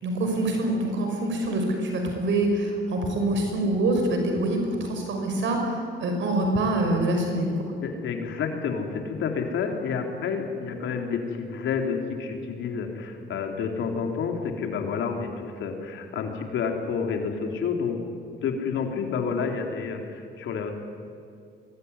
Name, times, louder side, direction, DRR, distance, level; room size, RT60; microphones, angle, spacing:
voice 1, 0.0-7.5, right 1 dB, 70° right, 3 dB, 5.8 m, -25 dB
voice 2, 7.8-18.0 18.4-20.7, left 6 dB, 75° left, 3 dB, 3.9 m, -29 dB
24.0 x 21.0 x 9.8 m, 2.4 s
cardioid pair, 90°, 20 cm